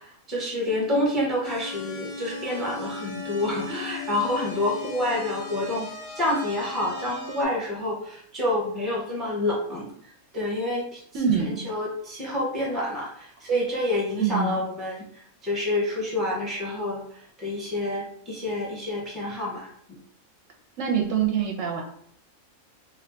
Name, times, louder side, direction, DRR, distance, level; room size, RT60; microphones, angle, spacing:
voice 1, 0.0-5.9 6.2-19.7, left 1 dB, ahead, -3 dB, 0.6 m, -28 dB
sound 1, 1.4-7.5, left 4 dB, 45° left, 0.5 m, -37 dB
voice 2, 11.1-11.6 14.2-14.6 20.8-21.8, right 7 dB, 70° right, 1 dB, 0.9 m, -24 dB
2.8 x 2.2 x 3.7 m, 0.65 s
omnidirectional pair, 1.4 m